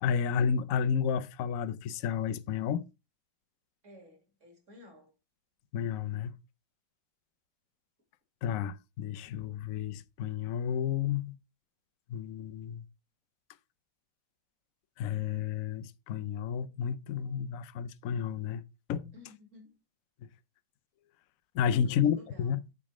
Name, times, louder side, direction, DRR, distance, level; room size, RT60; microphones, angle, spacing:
voice 1, 0.0-2.9 5.7-6.3 8.4-11.3 12.1-12.8 15.0-18.6 18.9-19.1 21.5-22.6, left 7 dB, 75° left, 0.7 m, -31 dB
voice 2, 3.8-5.1 19.1-19.8 21.6-22.5, left 1 dB, 35° right, 3.0 m, -54 dB
8.0 x 3.6 x 6.2 m
omnidirectional pair, 2.2 m